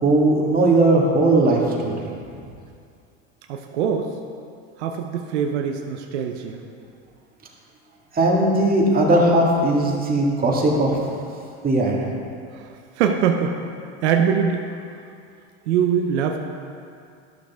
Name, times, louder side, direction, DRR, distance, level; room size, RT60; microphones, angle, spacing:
voice 1, 0.0-2.1 8.1-11.0 11.6-12.1, right 2 dB, 25° right, -2 dB, 1.8 m, -18 dB
voice 2, 3.5-4.1 4.8-6.6 12.5-13.6 14.0-14.6 15.7-16.4, right 7 dB, 85° right, 4 dB, 0.7 m, -23 dB
11.5 x 6.5 x 3.5 m, 2.4 s
supercardioid pair, 95°, 33 cm